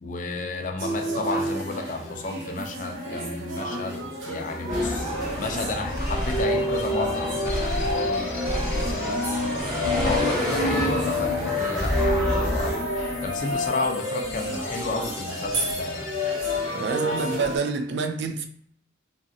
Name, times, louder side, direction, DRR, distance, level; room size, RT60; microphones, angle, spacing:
voice 1, 0.0-5.1 5.4-9.5 10.0-12.8 13.2-16.2, left 3 dB, 40° left, 3 dB, 0.4 m, -32 dB
sound 1, 0.8-17.6, right 1 dB, 85° right, 0.8 m, -33 dB
sound 2, 4.7-12.7, equal, 20° right, 0.9 m, -28 dB
sound 3, 6.0-17.3, left 2 dB, 85° left, 0.6 m, -29 dB
voice 2, 16.7-18.5, right 4 dB, 60° right, 6 dB, 0.3 m, -27 dB
2.9 x 2.4 x 2.6 m, 0.65 s
head